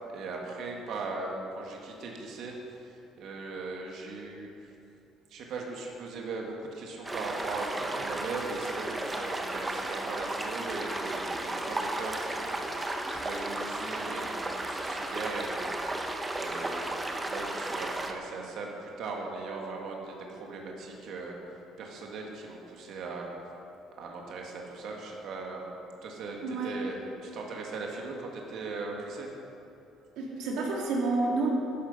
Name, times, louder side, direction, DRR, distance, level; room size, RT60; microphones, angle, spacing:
voice 1, 0.1-4.7 5.3-15.7 16.3-21.4 21.8-23.3 24.0-25.7 26.0-29.3, right 3 dB, 55° right, 0 dB, 1.9 m, -39 dB
sound 1, 7.1-18.1, right 2 dB, 10° right, 0.9 m, -34 dB
voice 2, 26.4-26.8 30.2-31.5, right 3 dB, 80° right, -2 dB, 2.9 m, -29 dB
13.5 x 12.0 x 5.5 m, 2.8 s
cardioid pair, 165°, 0 cm